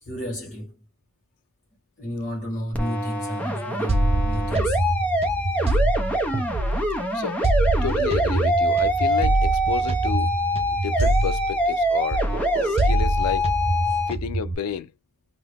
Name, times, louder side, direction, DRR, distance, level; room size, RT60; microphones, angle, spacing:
voice 1, 0.0-0.8 2.0-4.9 5.7-5.8 13.9-14.0, equal, 35° left, 1.3 m, -31 dB
sound 1, 2.7-14.1, equal, 5° left, 0.6 m, -24 dB
sound 2, 3.9-7.0 7.4-11.8 12.1-14.5, right 2 dB, 25° right, 0.3 m, -24 dB
voice 2, 7.8-10.3 10.8-12.2 12.6-13.5 14.1-14.9, left 7 dB, 90° left, 0.4 m, -31 dB
2.7 x 2.4 x 3.3 m
head